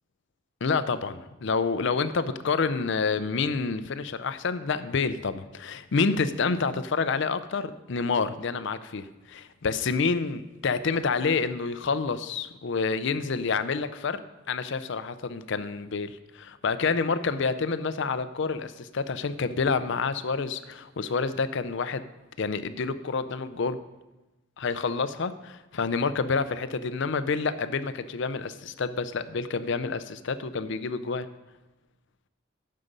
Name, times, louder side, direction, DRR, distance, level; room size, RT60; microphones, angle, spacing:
voice 1, 0.6-14.2 14.5-22.0 22.4-23.8 24.6-31.3, left 4 dB, 60° left, 12 dB, 0.5 m, -28 dB
9.8 x 6.6 x 5.3 m, 1.0 s
head